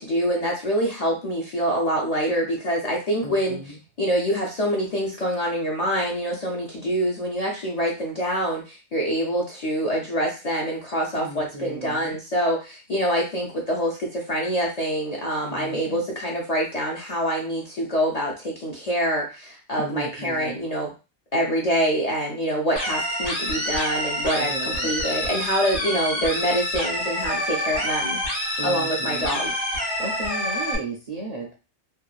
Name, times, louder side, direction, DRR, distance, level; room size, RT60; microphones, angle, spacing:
voice 1, 0.0-3.6 4.0-20.9 21.3-28.2 28.6-29.5, equal, 55° left, -2 dB, 0.4 m, -25 dB
voice 2, 3.2-3.8 11.1-12.2 15.4-16.1 19.8-20.6 24.4-24.9 28.6-29.4 30.0-31.5, right 2 dB, 55° right, -1 dB, 0.4 m, -35 dB
sound 1, 22.8-30.8, equal, 85° left, 1.4 m, -27 dB
2.8 x 2.2 x 2.3 m, 0.32 s
omnidirectional pair, 1.2 m